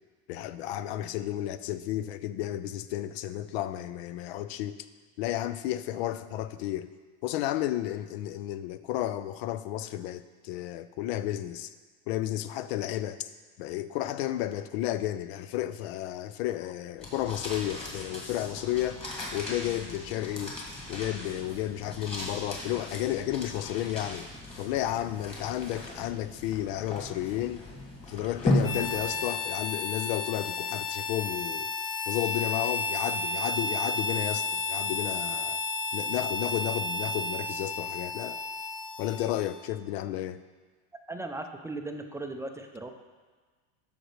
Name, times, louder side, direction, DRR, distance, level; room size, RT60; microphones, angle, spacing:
voice 1, 0.3-4.8 5.2-6.9 7.2-11.7 12.1-13.3 13.6-19.0 19.3-20.6 20.9-24.3 24.6-27.6 28.1-31.7 32.1-35.6 35.9-38.4 39.0-40.4, left 13 dB, 80° left, 14 dB, 0.5 m, -32 dB
sound 1, 17.0-29.6, left 1 dB, 20° left, 1.8 m, -36 dB
Harmonica, 28.6-39.7, left 3 dB, 40° left, 1.2 m, -32 dB
voice 2, 41.1-42.9, right 2 dB, 10° right, 5 dB, 0.4 m, -37 dB
13.0 x 5.2 x 3.1 m, 1.4 s
supercardioid pair, 130°, 31 cm